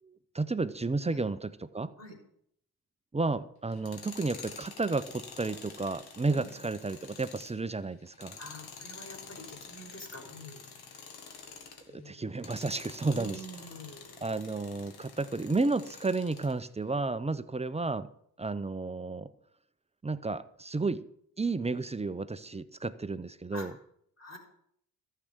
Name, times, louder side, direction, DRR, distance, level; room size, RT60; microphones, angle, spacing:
voice 1, 0.0-1.9 3.1-8.4 11.9-13.4 14.2-18.1 18.4-19.3 20.0-21.0 21.4-23.7, right 3 dB, 15° right, 13 dB, 0.7 m, -32 dB
Tools, 3.7-11.9 12.3-16.6, left 5 dB, 60° left, 1.8 m, -48 dB
voice 2, 8.4-10.6 11.9-12.3 13.1-14.1 23.5-23.7 24.2-24.4, equal, 35° left, 1 dB, 4.0 m, -46 dB
13.5 x 6.8 x 6.2 m, 0.70 s
hypercardioid pair, 45°, 44 cm